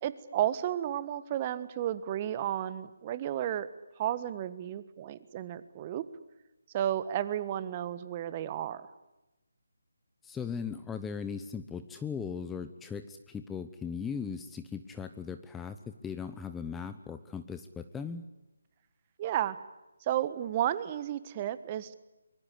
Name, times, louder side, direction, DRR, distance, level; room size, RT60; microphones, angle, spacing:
voice 1, 0.0-3.7 4.0-6.0 6.7-8.9 19.2-19.6 20.0-21.9, right 11 dB, 25° right, 14 dB, 1.4 m, -32 dB
voice 2, 10.2-18.2, left 6 dB, 5° left, 9 dB, 0.8 m, -38 dB
25.0 x 22.5 x 8.4 m, 1.0 s
figure-of-eight pair, 155°, 0 cm